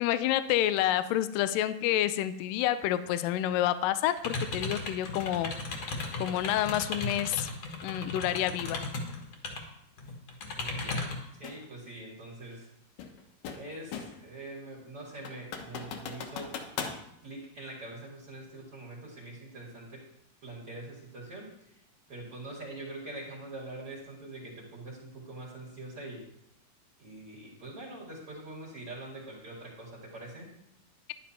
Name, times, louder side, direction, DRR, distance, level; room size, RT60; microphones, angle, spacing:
voice 1, 0.0-5.5 6.2-7.5 7.8-8.8, left 12 dB, 85° left, 12 dB, 1.9 m, -28 dB
sound 1, 4.2-9.6 10.0-11.2, left 3 dB, 50° left, 2.1 m, -36 dB
voice 2, 10.6-12.7 13.6-16.6 17.2-20.0 20.4-21.8 22.1-26.2 27.0-30.5, right 2 dB, 40° right, -4 dB, 2.8 m, -44 dB
sound 2, 11.4-11.6 13.0-14.3 14.7-14.8 15.2-17.0, left 6 dB, 65° left, 2.4 m, -39 dB
11.0 x 10.5 x 4.3 m, 0.77 s
omnidirectional pair, 4.5 m